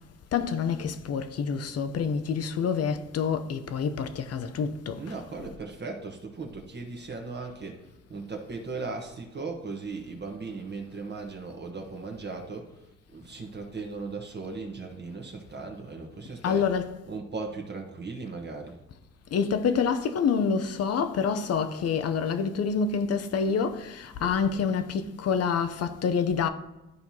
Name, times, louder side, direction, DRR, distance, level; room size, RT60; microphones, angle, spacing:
voice 1, 0.3-5.0 16.4-16.9 19.3-26.5, left 6 dB, 55° left, 0.7 m, -27 dB
voice 2, 5.0-16.7 17.0-18.8, right 4 dB, 35° right, 1.2 m, -37 dB
12.0 x 4.4 x 2.8 m
cardioid pair, 90°, 30 cm